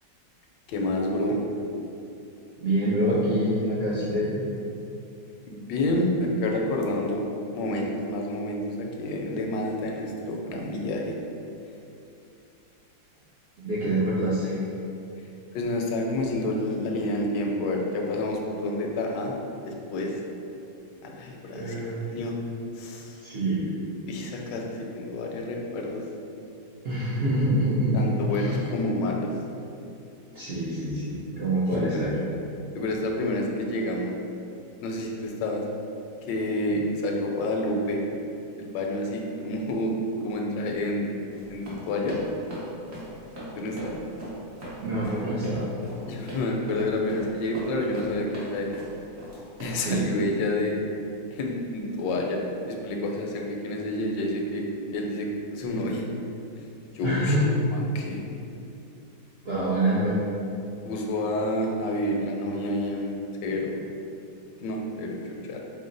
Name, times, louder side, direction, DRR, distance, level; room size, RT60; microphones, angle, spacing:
voice 1, 0.7-1.4 5.5-7.3 7.5-11.2 15.2-19.3 19.6-20.2 21.0-22.4 22.7-23.2 24.1-26.1 27.9-29.4 31.7-32.0 32.7-34.2 34.8-35.6 36.2-38.1 38.4-40.0 40.2-42.2 43.5-44.0 46.1-48.8 49.6-50.8 51.3-52.4 52.7-54.6 54.9-56.1 56.6-56.7 56.9-57.4 57.7-58.2 60.8-63.2 63.4-63.8 64.6-65.6, left 1 dB, 80° left, 1 dB, 1.2 m, -29 dB
voice 2, 2.6-4.4 13.6-14.6 21.5-22.0 23.2-23.7 26.8-28.6 30.3-32.1 44.8-45.7 49.7-50.0 57.0-57.4 59.4-60.2, right 1 dB, 70° right, -9 dB, 0.5 m, -26 dB
Run, 41.3-49.8, equal, 45° right, 1.1 m, -40 dB
5.2 x 2.1 x 3.8 m, 2.7 s
omnidirectional pair, 1.9 m